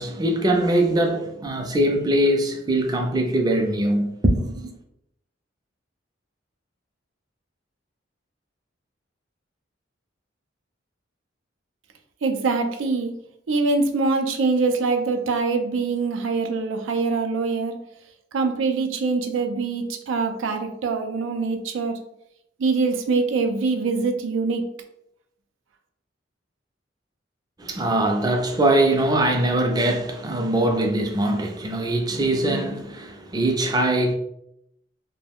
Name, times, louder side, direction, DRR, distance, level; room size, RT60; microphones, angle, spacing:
voice 1, 0.0-4.7 27.6-34.1, right 1 dB, 20° right, 0.4 m, -22 dB
voice 2, 12.2-13.1 13.5-17.8 18.3-22.0 22.6-24.7, right 4 dB, 85° right, 0.4 m, -24 dB
2.3 x 2.0 x 3.4 m
head